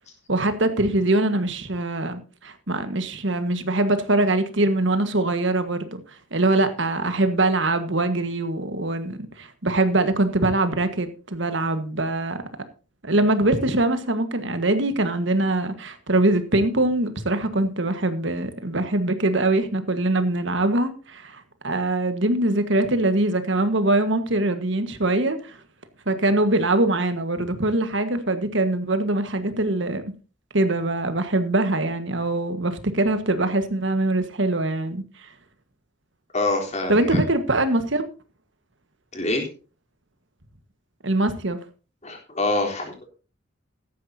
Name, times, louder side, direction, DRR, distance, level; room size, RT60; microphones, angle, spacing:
voice 1, 0.3-12.4 13.0-25.6 26.0-30.0 30.5-35.3 36.9-38.0 41.0-41.6, right 2 dB, 65° right, 1.6 m, -23 dB
voice 2, 36.3-37.2 39.1-39.5 42.0-43.1, left 2 dB, 35° left, 3.7 m, -25 dB
15.0 x 13.0 x 2.8 m
head